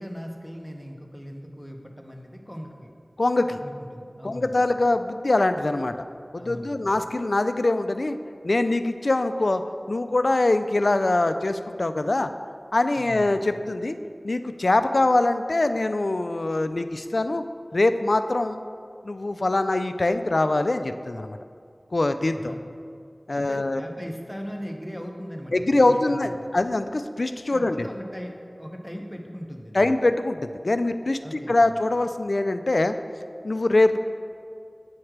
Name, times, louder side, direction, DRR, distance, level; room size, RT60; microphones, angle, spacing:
voice 1, 0.0-2.9 3.6-4.6 6.4-6.9 13.0-13.4 22.4-22.6 23.3-26.5 27.5-29.9 31.2-31.8, equal, 10° left, 2 dB, 0.8 m, -39 dB
voice 2, 3.2-3.6 4.2-6.0 6.3-8.2 8.4-9.6 9.9-12.3 12.7-14.0 14.2-17.4 17.7-18.6 19.0-21.4 21.9-22.5 23.3-23.8 25.5-27.9 29.7-32.9 33.4-34.0, left 2 dB, 65° left, 9 dB, 0.3 m, -23 dB
8.8 x 3.2 x 5.9 m, 2.3 s
wide cardioid pair, 50°, 0 cm